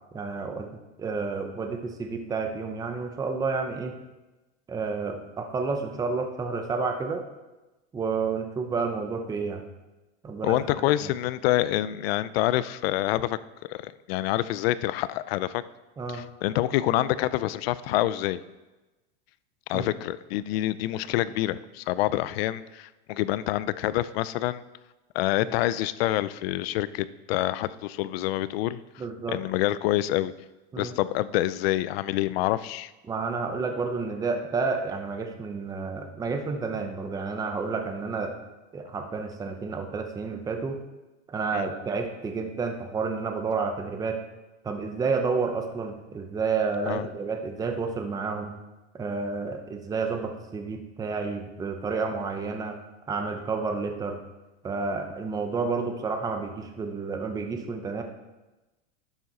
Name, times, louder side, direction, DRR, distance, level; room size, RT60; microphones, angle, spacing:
voice 1, 0.1-4.0 4.7-7.2 7.9-9.6 10.2-10.6 11.0-11.1 16.0-16.2 19.7-19.9 25.4-25.5 29.0-29.4 30.7-30.9 33.0-38.3 38.7-40.8 41.3-44.2 44.6-48.5 48.9-52.8 53.1-54.2 54.6-58.0, right 4 dB, 10° right, 5 dB, 0.7 m, -30 dB
voice 2, 10.4-13.4 13.7-15.6 16.1-18.4 19.7-24.6 25.1-28.8 29.3-30.3 30.8-32.9 41.5-41.7 46.9-47.1, left 15 dB, 65° left, 17 dB, 0.5 m, -27 dB
11.0 x 7.3 x 4.1 m, 1.1 s
supercardioid pair, 150°, 32 cm